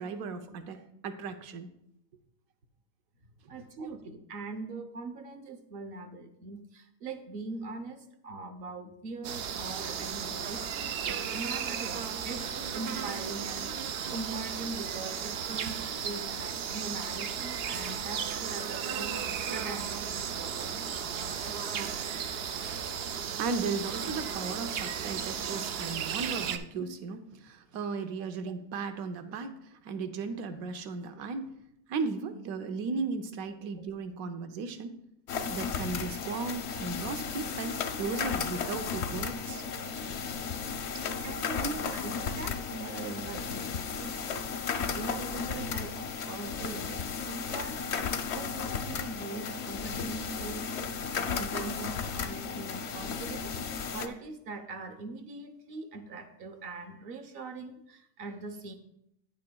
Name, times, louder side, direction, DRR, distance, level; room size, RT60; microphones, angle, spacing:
voice 1, 0.0-1.7 3.8-3.9 23.4-31.5 31.9-35.0 35.5-39.6 41.5-41.9, right 4 dB, 70° right, 8 dB, 1.1 m, -36 dB
voice 2, 3.5-20.8 41.2-44.2 44.9-47.8 48.3-53.6 53.9-58.7, right 3 dB, 50° right, 8 dB, 0.8 m, -42 dB
sound 1, 9.2-26.6, right 7 dB, 90° right, 0.5 m, -35 dB
sound 2, 35.3-54.1, left 6 dB, 60° left, 0.7 m, -34 dB
9.5 x 8.4 x 2.3 m, 0.79 s
omnidirectional pair, 1.6 m